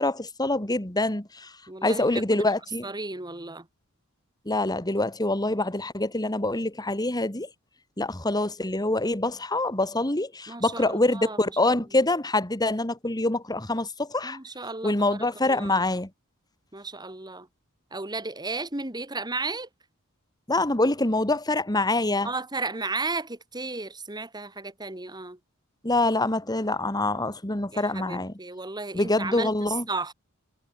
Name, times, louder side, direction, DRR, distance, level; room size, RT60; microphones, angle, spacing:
voice 1, 0.0-1.5 1.8-2.9 4.5-7.5 8.0-14.4 14.8-16.1 20.5-22.3 25.8-28.3 28.9-29.8, left 2 dB, 20° left, 2.3 m, -25 dB
voice 2, 1.7-2.5 2.8-3.7 10.5-12.0 14.2-15.8 16.7-17.5 17.9-19.7 22.2-25.4 27.7-30.1, right 3 dB, 20° right, 2.6 m, -34 dB
head